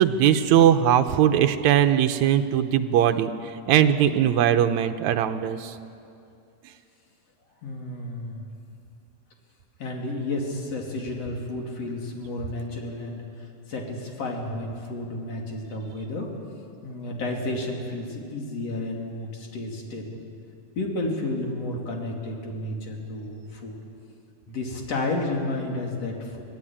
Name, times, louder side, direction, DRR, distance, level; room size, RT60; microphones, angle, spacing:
voice 1, 0.0-3.3 3.7-5.8, right 10 dB, 70° right, 8 dB, 2.0 m, -20 dB
voice 2, 7.6-8.4 9.8-13.2 13.7-16.3 16.8-20.2 20.8-23.8 24.5-26.4, left 2 dB, 50° left, 0 dB, 3.7 m, -31 dB
24.5 x 17.0 x 8.8 m, 2.6 s
omnidirectional pair, 3.7 m